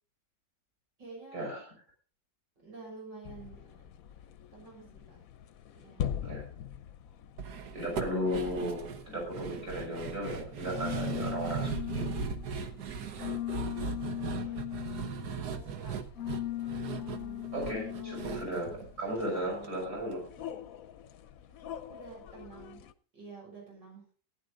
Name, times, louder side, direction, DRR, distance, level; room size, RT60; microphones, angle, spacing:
voice 1, 1.0-1.5 2.6-3.7 4.5-5.2 5.7-6.1 7.5-7.7 12.9-13.3 14.2-14.6 15.2-16.0 16.9-17.5 18.0-18.4 19.3-19.7 21.9-22.8 23.1-24.0, right 4 dB, 85° right, -1 dB, 6.9 m, -49 dB
sound 1, 3.3-22.9, left 12 dB, 60° left, 1.0 m, -40 dB
sound 2, 7.4-19.7 19.9-20.0 20.4-20.5, right 6 dB, 65° right, 1.6 m, -38 dB
voice 2, 7.7-12.0 17.5-18.7 19.0-20.2, equal, 45° right, -1 dB, 6.3 m, -35 dB
15.5 x 10.5 x 3.9 m, 0.39 s
omnidirectional pair, 1.9 m